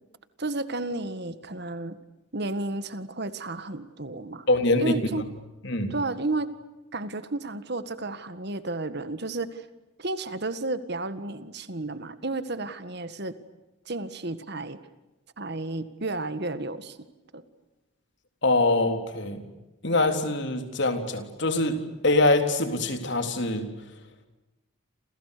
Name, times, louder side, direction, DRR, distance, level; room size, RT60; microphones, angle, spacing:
voice 1, 0.4-2.0 2.3-4.4 4.8-5.3 5.9-6.5 6.9-9.7 10.0-13.4 13.9-14.8 15.4-17.0 17.3-17.4, right 2 dB, 55° right, 12 dB, 1.8 m, -32 dB
voice 2, 4.5-4.9 5.6-5.9 18.4-19.4 19.8-21.8 22.0-23.7, left 2 dB, 55° left, 6 dB, 3.8 m, -24 dB
29.0 x 28.5 x 6.8 m, 1.0 s
head